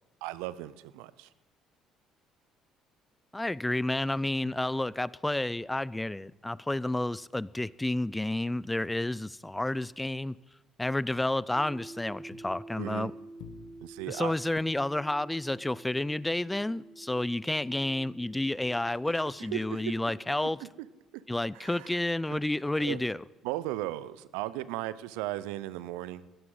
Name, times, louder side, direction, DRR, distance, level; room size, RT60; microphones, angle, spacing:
voice 1, 0.2-1.3 12.8-13.1 13.8-14.3 19.5-20.0 20.6-20.7 21.5-21.9 22.3-22.4 22.8-23.0 23.4-26.2, right 15 dB, 80° right, 17 dB, 0.5 m, -36 dB
voice 2, 3.3-10.4 10.8-13.1 14.1-20.6 21.3-23.2, left 1 dB, 10° left, 21 dB, 0.4 m, -30 dB
sound 1, 5.2-8.2 8.5-8.8 9.1-13.0 13.2-14.6, left 9 dB, 75° left, 1.1 m, -56 dB
sound 2, 11.6-20.4, right 2 dB, 30° right, 1.6 m, -49 dB
17.5 x 13.5 x 3.8 m, 1.1 s
hypercardioid pair, 60°, 0 cm